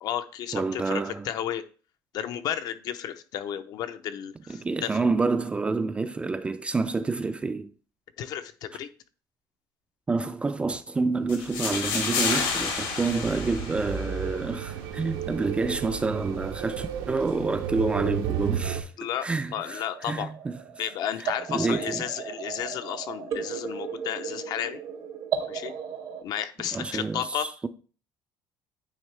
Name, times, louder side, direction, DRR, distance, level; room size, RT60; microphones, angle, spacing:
voice 1, 0.0-1.6 2.1-5.0 8.2-8.9 19.0-20.3 20.8-24.8 25.5-25.7 26.2-27.5, left 10 dB, 55° left, 0.6 m, -33 dB
voice 2, 0.5-1.3 4.5-7.7 10.1-18.9 19.2-20.6 21.5-22.0 26.7-27.7, right 3 dB, 15° right, 0.3 m, -28 dB
sound 1, 11.3-14.3, left 5 dB, 75° left, 1.7 m, -30 dB
sound 2, 11.5-18.8, right 8 dB, 85° right, 0.8 m, -33 dB
sound 3, 19.5-26.2, right 7 dB, 45° right, 0.7 m, -36 dB
9.1 x 3.6 x 3.3 m
cardioid pair, 150°, 8 cm